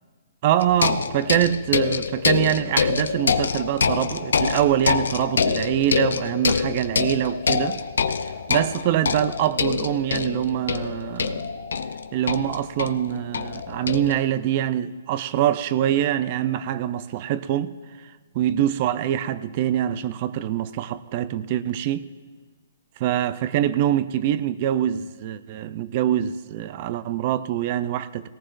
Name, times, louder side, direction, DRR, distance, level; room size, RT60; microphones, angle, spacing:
voice 1, 0.4-7.8 8.5-11.4 12.1-17.7 18.0-22.0 23.0-28.3, right 11 dB, 40° right, 0.5 m, -24 dB
sound 1, 0.6-14.2, left 5 dB, 90° left, 0.6 m, -25 dB
19.0 x 18.0 x 2.6 m
hypercardioid pair, 155°, 0 cm